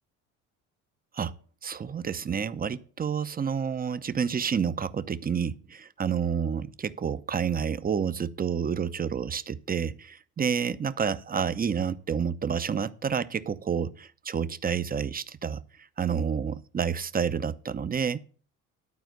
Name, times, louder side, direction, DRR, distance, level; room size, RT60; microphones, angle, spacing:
voice 1, 1.6-15.6 16.0-18.2, right 7 dB, 25° right, 0.7 m, -29 dB
11.5 x 4.3 x 7.8 m
hypercardioid pair, 65°, 35 cm